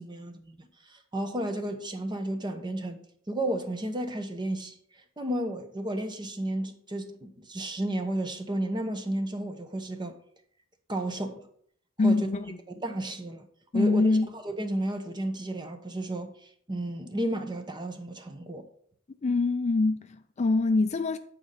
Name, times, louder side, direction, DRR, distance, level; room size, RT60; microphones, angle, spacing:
voice 1, 0.0-4.8 5.2-10.1 10.9-11.5 12.0-12.3 12.7-13.5 13.7-18.6, right 1 dB, 20° right, 0.8 m, -33 dB
voice 2, 12.0-12.6 13.7-14.3 19.2-21.2, left 3 dB, 35° left, 0.4 m, -24 dB
8.8 x 4.3 x 5.2 m
head